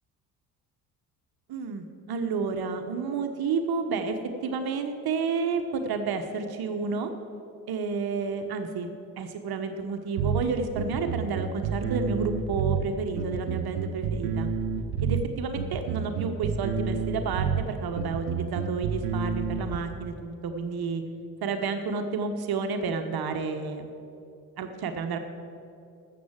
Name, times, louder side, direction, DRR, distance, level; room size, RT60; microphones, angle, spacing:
voice 1, 1.5-7.1 7.7-14.5 15.0-21.0 21.4-23.9 24.6-25.2, right 5 dB, 50° right, 6 dB, 1.3 m, -30 dB
sound 1, 10.2-19.8, right 6 dB, 75° right, 1.0 m, -29 dB
12.5 x 7.9 x 7.4 m, 2.6 s
hypercardioid pair, 60°, 47 cm